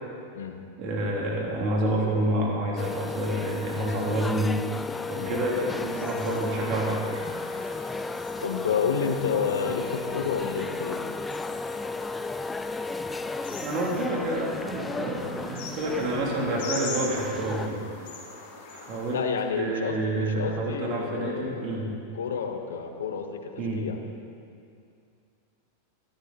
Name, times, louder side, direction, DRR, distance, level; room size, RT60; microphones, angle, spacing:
voice 1, 0.8-4.6 5.1-7.0 13.6-17.8 18.7-19.2 19.6-21.9 23.6-23.9, right 1 dB, 45° right, -2 dB, 3.0 m, -28 dB
sound 1, 2.8-17.7, left 3 dB, 10° left, 0.4 m, -34 dB
sound 2, 4.7-19.1, left 3 dB, 65° left, 2.7 m, -43 dB
voice 2, 8.4-11.0 19.1-21.9 22.1-24.0, left 6 dB, 80° left, 5 dB, 1.1 m, -30 dB
13.0 x 11.5 x 4.2 m, 2.4 s
hypercardioid pair, 105°, 0 cm